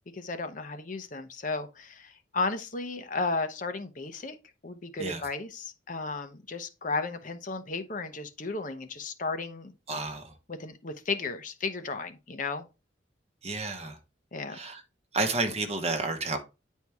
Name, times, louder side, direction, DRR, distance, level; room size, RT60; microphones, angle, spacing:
voice 1, 0.1-4.4 4.6-9.7 10.5-12.7 14.3-14.6, left 3 dB, 45° left, 0.7 m, -34 dB
voice 2, 9.9-10.3 13.4-14.0 14.5-14.8 15.1-16.4, right 3 dB, 35° right, 1.1 m, -31 dB
9.3 x 4.5 x 3.5 m
head